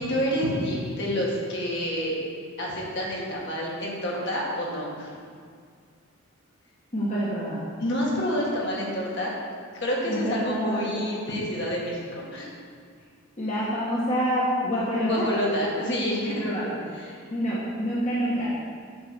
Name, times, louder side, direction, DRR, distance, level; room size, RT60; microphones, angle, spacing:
voice 1, 0.0-2.2 2.6-5.1 7.8-9.3 9.7-12.5 15.1-16.5 16.9-17.2, equal, 55° left, -4 dB, 2.2 m, -28 dB
voice 2, 6.9-7.7 10.1-11.1 13.4-15.5 16.2-16.8 17.3-18.5, equal, 35° left, -8 dB, 1.5 m, -27 dB
8.8 x 5.9 x 7.0 m, 2.1 s
head